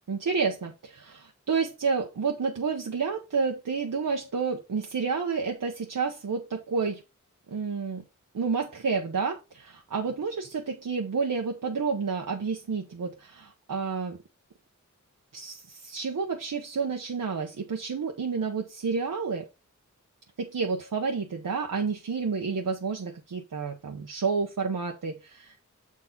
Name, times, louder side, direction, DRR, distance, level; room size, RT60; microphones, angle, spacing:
voice 1, 0.1-7.0 7.5-8.0 8.3-14.2 15.3-19.5 20.4-25.6, right 5 dB, 90° right, 0.9 m, -30 dB
7.2 x 4.7 x 3.9 m
wide cardioid pair, 65°, 32 cm